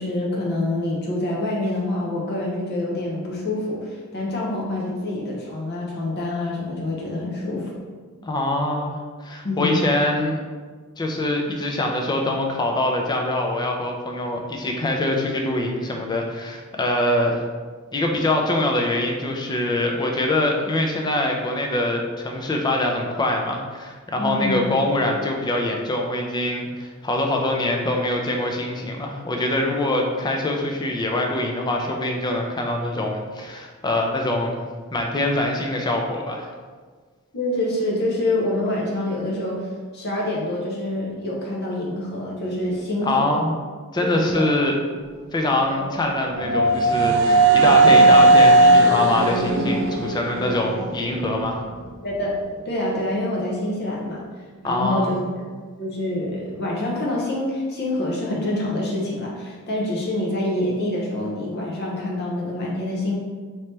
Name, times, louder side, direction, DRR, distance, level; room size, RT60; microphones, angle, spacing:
voice 1, 0.0-7.7 9.4-9.9 24.2-24.6 37.3-43.4 44.1-44.5 47.6-48.1 49.9-50.6 52.0-52.3 52.6-54.2 54.6-55.4 55.8-63.1, left 1 dB, 45° left, -4 dB, 0.7 m, -26 dB
voice 2, 8.2-8.9 9.2-10.4 11.0-17.4 17.9-34.7 34.9-36.5 43.0-43.5 43.9-44.8 45.3-51.6 54.6-55.2, left 1 dB, 20° left, 1 dB, 0.4 m, -24 dB
sound 1, 45.5-51.4, right 2 dB, 55° right, 0.4 m, -16 dB
3.1 x 2.9 x 3.2 m, 1.5 s
head